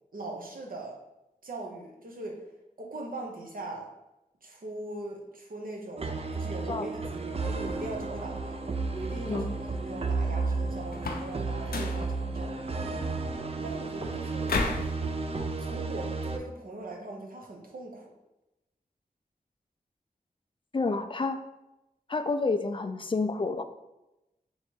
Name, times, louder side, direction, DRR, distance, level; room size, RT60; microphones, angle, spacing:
voice 1, 0.1-1.0 1.4-2.5 2.8-3.9 4.4-13.0 13.6-14.6 15.6-18.1, right 2 dB, 65° right, 0 dB, 0.8 m, -41 dB
sound 1, 6.0-16.4, right 3 dB, 40° right, 0.4 m, -33 dB
voice 2, 9.3-9.6 20.7-21.4 22.1-23.6, left 3 dB, 35° left, 8 dB, 0.3 m, -29 dB
sound 2, 10.9-11.4 11.7-12.1 14.5-14.9, left 3 dB, 85° left, 0.5 m, -31 dB
3.1 x 2.8 x 4.5 m, 0.94 s
wide cardioid pair, 55°, 15 cm